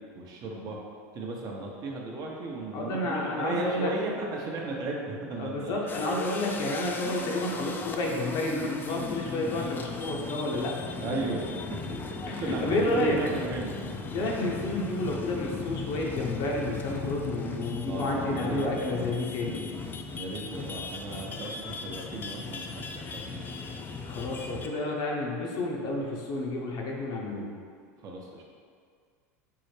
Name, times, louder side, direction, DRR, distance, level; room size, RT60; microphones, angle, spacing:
voice 1, 0.1-0.8 1.1-5.7 11.0-11.9 12.4-13.8 17.9-19.2 20.1-23.7 28.0-28.4, right 2 dB, 45° right, -1 dB, 0.7 m, -35 dB
voice 2, 2.7-3.9 5.4-10.9 12.3-13.2 14.1-19.6 24.0-27.5, left 2 dB, 55° left, -1 dB, 0.7 m, -30 dB
sound 1, 5.9-24.8, left 4 dB, 25° left, 0.3 m, -37 dB
5.4 x 2.1 x 3.1 m, 2.1 s
hypercardioid pair, 95°, 9 cm